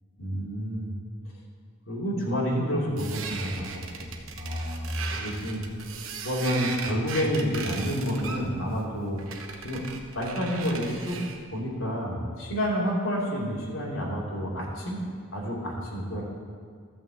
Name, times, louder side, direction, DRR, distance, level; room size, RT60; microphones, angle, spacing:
voice 1, 0.2-1.0 1.9-5.6 6.2-9.2 9.6-9.8 10.1-11.2 11.5-15.0 15.3-16.2, equal, 85° left, -5 dB, 2.9 m, -29 dB
sound 1, 3.0-11.4, right 5 dB, 90° right, 1.1 m, -38 dB
13.0 x 6.2 x 7.6 m, 2.1 s
head